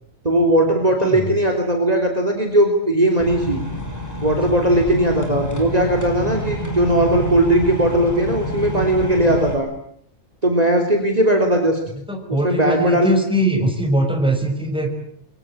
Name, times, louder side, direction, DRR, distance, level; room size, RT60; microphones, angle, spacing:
voice 1, 0.2-3.6 4.2-9.7 10.4-11.8 12.4-13.1, right 1 dB, 30° right, 3 dB, 3.5 m, -18 dB
sound 1, 3.2-9.5, equal, 15° left, 6.0 m, -28 dB
voice 2, 11.9-14.9, right 1 dB, 5° right, 4 dB, 5.7 m, -21 dB
28.5 x 23.5 x 8.8 m, 0.66 s
omnidirectional pair, 1.3 m